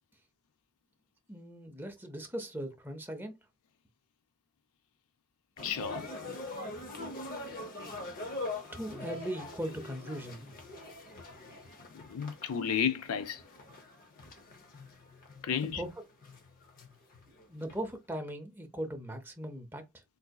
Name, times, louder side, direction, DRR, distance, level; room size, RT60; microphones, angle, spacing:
voice 1, 1.3-3.4 8.7-10.5 15.6-16.1 17.5-20.0, right 1 dB, 10° right, 0.7 m, -39 dB
voice 2, 5.6-6.1 11.9-13.4 15.4-15.8, left 7 dB, 85° left, 0.4 m, -32 dB
sound 1, 5.6-17.8, left 2 dB, 40° left, 0.7 m, -43 dB
3.9 x 2.6 x 2.3 m
head